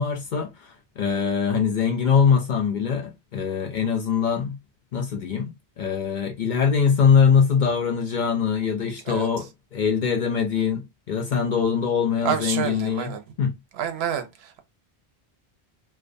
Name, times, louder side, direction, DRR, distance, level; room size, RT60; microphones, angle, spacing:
voice 1, 0.0-4.6 4.9-13.6, left 6 dB, 55° left, 0.6 m, -23 dB
voice 2, 12.2-13.2 13.8-14.6, right 8 dB, 70° right, 0.8 m, -28 dB
2.4 x 2.2 x 2.5 m
omnidirectional pair, 1.1 m